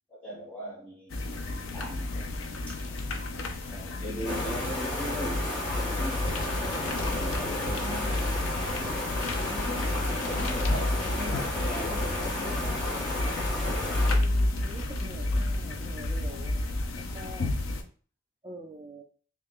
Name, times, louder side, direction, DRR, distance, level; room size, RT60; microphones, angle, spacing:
voice 1, 0.1-1.3 1.7-2.3 2.7-2.8 3.7-6.3 6.6-8.5 9.4-12.9, equal, 10° left, 1.2 m, -40 dB
sound 1, 1.1-17.8, left 2 dB, 75° left, 0.5 m, -31 dB
sound 2, 4.2-14.1, left 1 dB, 50° left, 1.6 m, -33 dB
voice 2, 14.1-17.5 18.4-19.0, right 1 dB, 20° right, 0.4 m, -45 dB
3.2 x 2.3 x 3.6 m
head